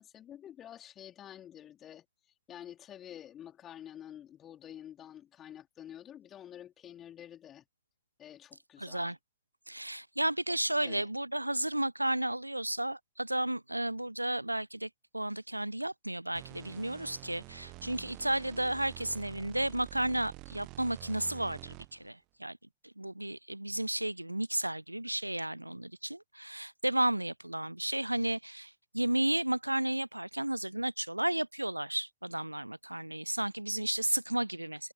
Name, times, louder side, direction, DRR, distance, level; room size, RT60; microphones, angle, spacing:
voice 1, 0.0-2.0 2.5-7.6 8.2-9.1 10.8-11.1, left 10 dB, 30° left, 4.4 m, -49 dB
voice 2, 8.8-9.2 9.7-22.6 23.0-34.9, right 1 dB, 85° right, 0.3 m, -33 dB
sound 1, 16.3-22.1, right 24 dB, 40° right, 1.0 m, -48 dB
figure-of-eight pair, 90°, 0 cm